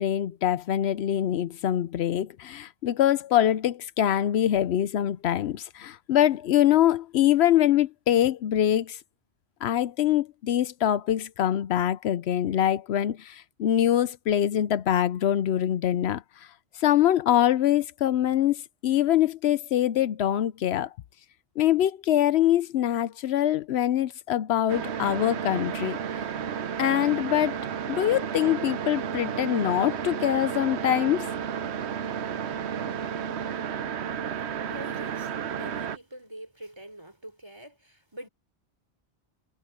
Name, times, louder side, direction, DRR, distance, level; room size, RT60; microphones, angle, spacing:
voice 1, 0.0-9.0 9.6-16.2 16.8-20.9 21.6-26.0 26.8-27.6 27.9-31.3, left 11 dB, 80° left, 0.9 m, -24 dB
sound 1, 24.7-36.0, right 8 dB, 90° right, 1.1 m, -32 dB
voice 2, 34.7-38.3, right 1 dB, 25° right, 3.9 m, -44 dB
omnidirectional pair, 1.1 m